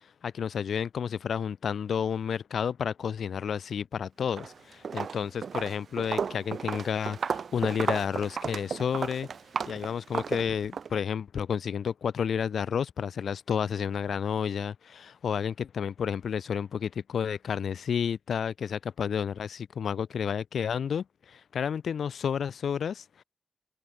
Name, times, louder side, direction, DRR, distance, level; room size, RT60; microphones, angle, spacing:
voice 1, 0.2-9.3 9.7-23.2, left 7 dB, 85° left, 2.4 m, -31 dB
Walk footsteps, 4.2-4.5 4.8-10.9, right 6 dB, 70° right, 2.5 m, -33 dB
open air
wide cardioid pair, 105°, 0 cm